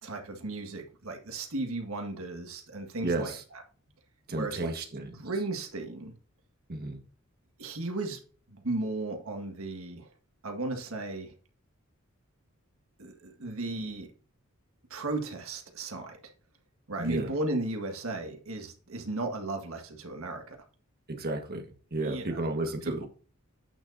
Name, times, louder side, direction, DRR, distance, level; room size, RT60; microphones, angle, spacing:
voice 1, 0.0-3.6 4.3-4.8 5.1-6.1 7.6-8.2 8.5-10.1 10.4-11.3 13.0-14.1 14.9-16.2 16.9-20.6 22.0-22.4 22.8-23.1, right 2 dB, 75° right, 3 dB, 1.7 m, -35 dB
voice 2, 3.0-3.4 4.3-5.1 6.7-7.0 17.0-17.3 21.1-21.7 21.9-23.1, right 2 dB, 45° right, 5 dB, 1.5 m, -32 dB
8.7 x 6.7 x 2.7 m, 0.40 s
head